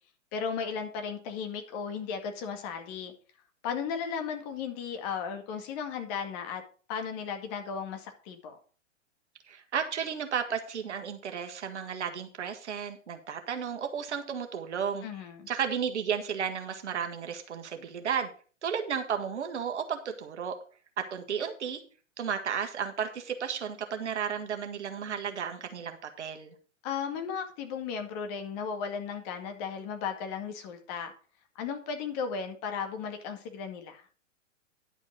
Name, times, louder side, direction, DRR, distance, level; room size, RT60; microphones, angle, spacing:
voice 1, 0.3-3.1 3.6-6.6 6.9-8.6 15.0-15.5 26.8-31.1 31.6-34.0, left 6 dB, 35° left, 2.0 m, -35 dB
voice 2, 9.5-15.0 15.5-18.3 18.6-20.5 21.1-21.8 22.2-26.5, right 7 dB, 60° right, 1.7 m, -33 dB
11.0 x 5.3 x 6.2 m
figure-of-eight pair, 110°, 38 cm